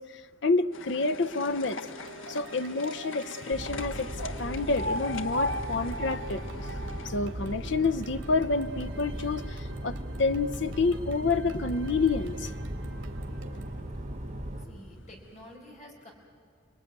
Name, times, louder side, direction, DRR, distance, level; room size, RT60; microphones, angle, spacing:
voice 1, 0.0-1.8 2.3-4.1 4.4-6.4 7.0-12.5, left 3 dB, 60° left, 0.7 m, -28 dB
sound 1, 0.7-9.0 9.3-10.2 10.9-11.0 11.3-11.4 11.7-11.8 12.6-12.8 13.3-13.4 14.1-14.2 14.7-14.8, left 1 dB, 80° left, 1.3 m, -38 dB
sound 2, 1.5-13.8, right 3 dB, 80° right, 2.9 m, -50 dB
sound 3, 3.5-14.6, equal, 35° right, 2.2 m, -37 dB
voice 2, 14.7-16.1, left 1 dB, 35° left, 5.2 m, -49 dB
30.0 x 21.0 x 9.5 m
head